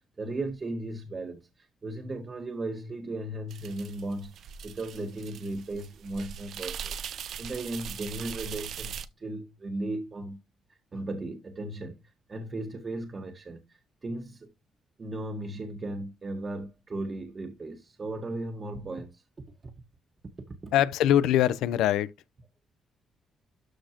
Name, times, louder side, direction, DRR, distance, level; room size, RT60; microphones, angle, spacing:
voice 1, 0.0-10.4 10.7-14.5 15.0-19.2 19.6-19.7 20.5-20.7, right 2 dB, 35° right, 1.6 m, -36 dB
sound 1, 3.5-9.1, right 8 dB, 70° right, 0.8 m, -40 dB
voice 2, 20.7-22.1, left 11 dB, 90° left, 0.7 m, -23 dB
13.0 x 4.3 x 3.0 m
cardioid pair, 90°, 0 cm